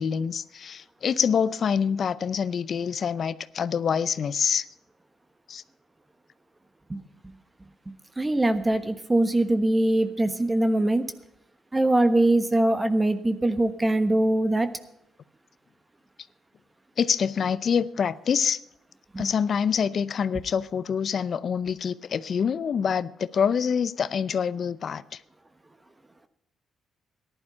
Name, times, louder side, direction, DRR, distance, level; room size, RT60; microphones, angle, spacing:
voice 1, 0.0-4.7 5.5-5.6 17.0-18.6 19.2-25.2, left 7 dB, 55° left, 0.6 m, -26 dB
voice 2, 8.2-11.1 11.7-14.7 19.1-19.2, right 1 dB, 20° right, 1.2 m, -22 dB
14.0 x 11.5 x 5.6 m
cardioid pair, 75°, 0 cm